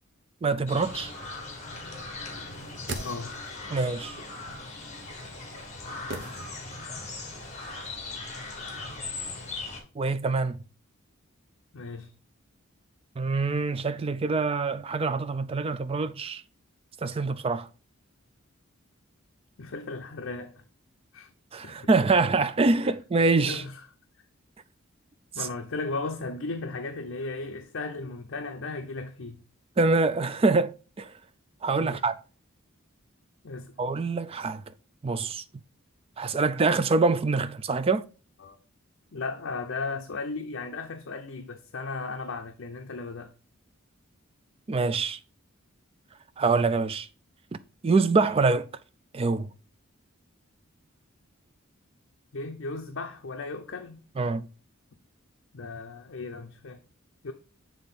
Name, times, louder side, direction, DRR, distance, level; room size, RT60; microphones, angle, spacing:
voice 1, 0.4-1.1 3.7-4.2 10.0-10.6 13.2-16.4 17.0-17.7 21.5-23.6 25.4-25.5 29.8-31.1 31.6-32.2 33.8-34.6 35.0-35.4 36.2-38.1 44.7-45.2 46.4-47.1 47.8-48.7 49.1-49.5 54.2-54.5, right 3 dB, 25° right, 0.4 m, -25 dB
sound 1, 0.7-9.8, left 3 dB, 35° left, 1.6 m, -39 dB
sound 2, 2.5-3.7 6.1-7.0 7.3-7.4, right 2 dB, 55° right, 0.9 m, -39 dB
voice 2, 3.0-3.4 11.7-12.1 19.6-20.6 21.1-21.3 21.6-21.8 23.5-23.8 25.3-29.4 31.7-32.0 33.4-33.7 38.4-38.6 39.1-43.3 52.3-54.0 55.5-56.8 57.2-57.3, left 3 dB, 60° left, 0.6 m, -36 dB
7.5 x 3.6 x 4.0 m
head